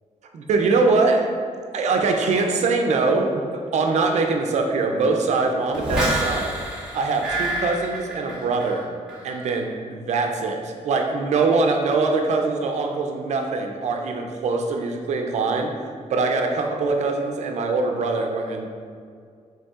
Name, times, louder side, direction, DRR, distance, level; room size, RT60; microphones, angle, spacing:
voice 1, 0.3-1.3 1.7-6.5 6.9-8.9 9.2-15.7 16.1-18.7, right 3 dB, 70° right, 3 dB, 0.4 m, -23 dB
sound 1, 5.7-8.8 9.1-9.5, right 1 dB, 5° right, 1.3 m, -27 dB
5.3 x 3.7 x 2.4 m, 2.1 s
wide cardioid pair, 170°, 12 cm